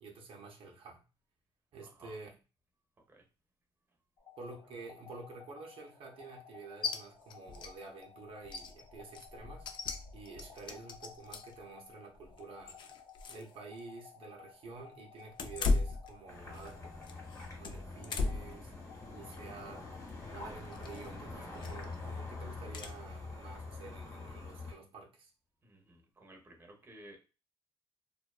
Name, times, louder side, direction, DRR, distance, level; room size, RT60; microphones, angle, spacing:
voice 1, 0.0-1.0 1.7-2.4 4.4-9.7 10.1-12.8 13.3-16.9 17.6-18.7 19.1-19.9 20.3-25.3, right 3 dB, 65° right, 0.6 m, -49 dB
voice 2, 1.8-2.2 3.1-3.2 25.6-27.2, right 1 dB, 25° right, 0.7 m, -55 dB
sound 1, 4.2-21.9, left 7 dB, 75° left, 1.0 m, -57 dB
sound 2, 6.8-7.0 7.3-7.7 8.0-8.1 8.4-11.6 12.1-13.5 13.8-13.9 15.3-16.7 17.0-18.6 19.0-19.4 20.7-21.1 21.6-21.9 22.7-22.9, left 3 dB, 55° left, 0.4 m, -37 dB
sound 3, 16.3-24.7, left 3 dB, 30° left, 0.9 m, -45 dB
2.5 x 2.2 x 2.3 m
cardioid pair, 115°, 10 cm